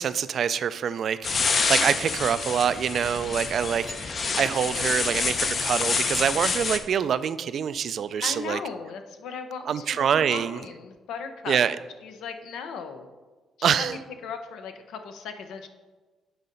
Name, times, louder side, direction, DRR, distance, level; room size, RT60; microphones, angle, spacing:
voice 1, 0.0-8.6 9.7-10.6 11.5-11.8 13.6-14.0, right 8 dB, 60° right, 15 dB, 0.3 m, -25 dB
sound 1, 1.2-6.8, left 4 dB, 45° left, 0.6 m, -27 dB
voice 2, 8.2-11.6 12.0-13.1 13.6-15.7, left 6 dB, 85° left, 7 dB, 0.7 m, -37 dB
7.8 x 4.0 x 5.3 m, 1.3 s
cardioid pair, 90°, 0 cm